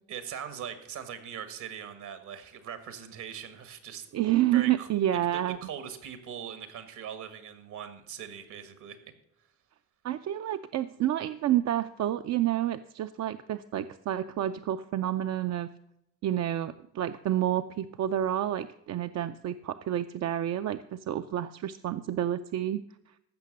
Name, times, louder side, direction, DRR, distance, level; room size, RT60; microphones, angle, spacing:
voice 1, 0.1-4.1 4.5-4.9 5.3-9.0, right 8 dB, 80° right, 11 dB, 1.7 m, -41 dB
voice 2, 4.1-5.6 10.0-15.7 16.2-23.1, right 12 dB, 60° right, 9 dB, 0.5 m, -29 dB
15.0 x 6.0 x 6.6 m, 0.80 s
cardioid pair, 90°, 30 cm